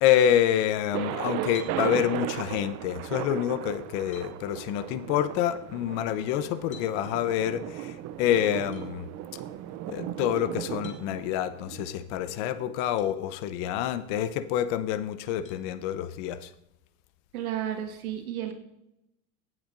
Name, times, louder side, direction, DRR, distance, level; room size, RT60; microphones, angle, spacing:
voice 1, 0.0-9.4 9.9-16.5, left 10 dB, 55° left, 13 dB, 0.8 m, -27 dB
Thunder, 0.9-12.7, right 12 dB, 40° right, 0.6 m, -36 dB
sound 1, 1.5-1.8 3.5-3.6 4.1-4.3 6.7-6.9 8.7-8.9 10.8-11.1 13.0-13.1 13.8-13.9 15.4-15.6, left 7 dB, 15° left, 2.2 m, -49 dB
voice 2, 17.3-18.5, right 10 dB, 85° right, 3 dB, 1.9 m, -32 dB
16.5 x 7.7 x 2.6 m, 0.85 s
supercardioid pair, 120°, 42 cm